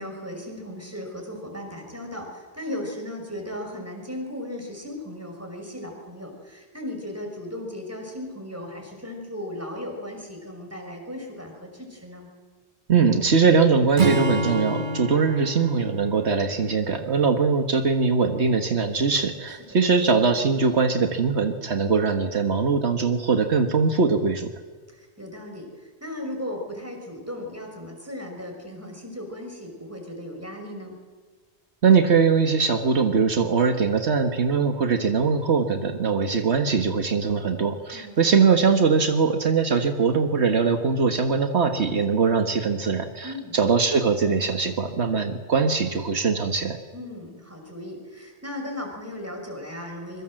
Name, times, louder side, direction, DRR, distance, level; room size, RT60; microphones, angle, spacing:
voice 1, 0.0-12.3 19.7-19.8 24.9-30.9 37.9-38.3 43.2-43.6 46.9-50.2, left 1 dB, 15° right, 2 dB, 6.1 m, -36 dB
voice 2, 12.9-24.5 31.8-46.8, right 5 dB, 75° right, 6 dB, 1.8 m, -21 dB
Acoustic guitar / Strum, 14.0-17.4, right 2 dB, 45° right, 1.7 m, -28 dB
25.5 x 23.5 x 7.8 m, 1.4 s
omnidirectional pair, 1.1 m